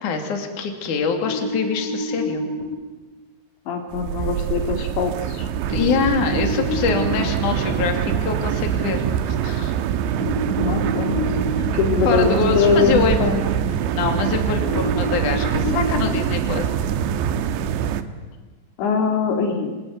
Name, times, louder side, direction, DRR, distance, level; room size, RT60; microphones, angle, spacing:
voice 1, 0.0-2.5 5.7-9.7 11.6-11.7 12.1-13.3 13.9-16.7, left 5 dB, 50° left, 4 dB, 3.9 m, -24 dB
sound 1, 1.2-2.6 5.7-7.1 10.2-11.6 14.7-16.1, left 1 dB, 50° right, 6.9 m, -28 dB
voice 2, 3.7-5.5 10.6-11.1 11.7-13.4 18.8-19.8, left 5 dB, 80° left, 4 dB, 4.7 m, -22 dB
sound 2, 3.9-18.0, right 9 dB, 80° right, 3.4 m, -24 dB
27.0 x 22.5 x 9.6 m, 1.2 s
omnidirectional pair, 5.1 m